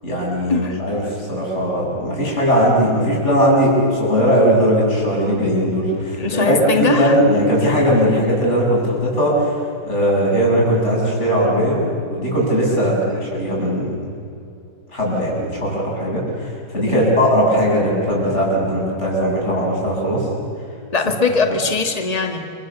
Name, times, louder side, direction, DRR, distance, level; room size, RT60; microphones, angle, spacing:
voice 1, 0.0-9.5 9.8-14.0 14.9-20.3 21.5-21.6, equal, 35° left, -4 dB, 8.0 m, -18 dB
voice 2, 6.2-7.1 13.1-13.3 16.9-17.2 20.9-22.4, left 4 dB, 20° left, 5 dB, 2.1 m, -21 dB
29.0 x 25.5 x 7.1 m, 2.6 s
omnidirectional pair, 2.0 m